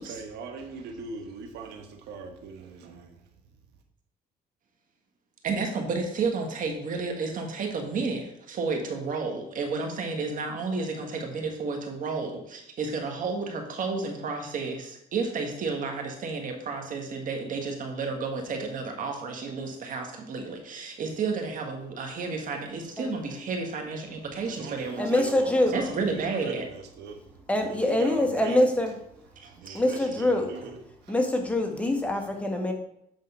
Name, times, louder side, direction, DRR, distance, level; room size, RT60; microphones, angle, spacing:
voice 1, 0.0-3.3 24.3-28.6 29.3-31.2 31.9-32.3, right 4 dB, 80° right, 4 dB, 1.3 m, -41 dB
voice 2, 5.4-25.2 25.7-26.7 29.4-29.8, right 4 dB, 50° right, 3 dB, 1.6 m, -31 dB
voice 3, 25.0-25.8 27.5-28.9 29.7-30.5 31.1-32.7, left 1 dB, 10° left, 3 dB, 1.3 m, -24 dB
8.3 x 3.7 x 5.5 m, 0.75 s
cardioid pair, 110°, 17 cm